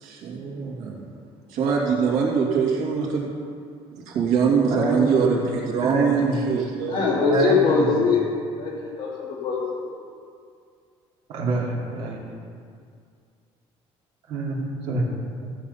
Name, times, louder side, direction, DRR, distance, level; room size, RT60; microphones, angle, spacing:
voice 1, 0.0-1.0 1.5-3.3 4.1-7.0, right 5 dB, 85° right, -2 dB, 2.5 m, -23 dB
voice 2, 4.6-6.5 6.9-7.0 7.3-8.1 11.3-12.2 14.3-15.1 15.4-15.5, right 2 dB, 60° right, -3 dB, 2.5 m, -27 dB
voice 3, 6.8-8.2 8.6-9.9, left 4 dB, 40° left, -5 dB, 2.9 m, -22 dB
15.0 x 7.5 x 5.6 m, 2.3 s
cardioid pair, 165°, 11 cm